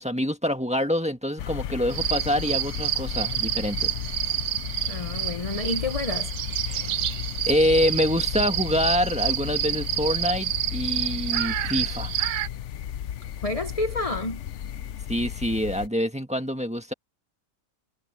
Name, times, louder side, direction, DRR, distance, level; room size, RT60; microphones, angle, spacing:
voice 1, 0.0-4.2 6.7-7.0 7.4-12.1 15.1-16.9, equal, 5° right, 1.5 m, -26 dB
sound 1, 1.4-15.9, left 10 dB, 70° left, 1.0 m, -34 dB
sound 2, 1.9-12.5, right 12 dB, 90° right, 1.1 m, -29 dB
voice 2, 4.9-6.3 13.4-14.4, left 2 dB, 30° left, 0.9 m, -29 dB
omnidirectional pair, 1.4 m